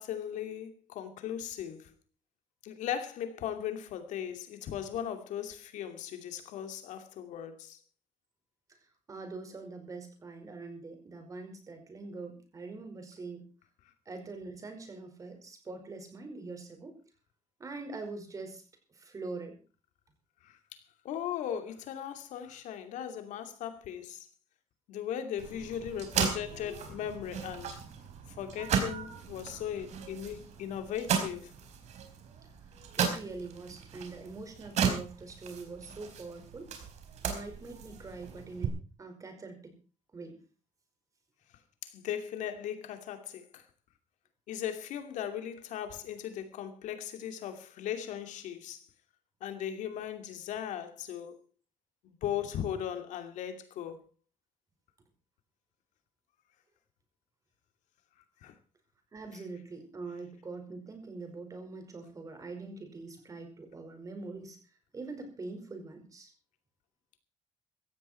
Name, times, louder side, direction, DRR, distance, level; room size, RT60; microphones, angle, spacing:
voice 1, 0.0-1.9 2.6-7.8 20.4-24.3 24.9-27.8 28.4-31.5 41.8-43.6 44.5-48.8 49.4-51.4 52.0-54.0 58.4-58.5, left 9 dB, 90° left, 2.6 m, -38 dB
voice 2, 8.7-13.4 14.0-17.0 17.6-18.6 18.9-19.6 32.4-36.7 37.2-39.8 40.1-40.4 59.1-64.6 64.9-66.3, right 3 dB, 25° right, 5.1 m, -43 dB
sound 1, 25.4-38.7, right 7 dB, 65° right, 4.5 m, -36 dB
17.0 x 14.5 x 4.4 m
cardioid pair, 150°, 12 cm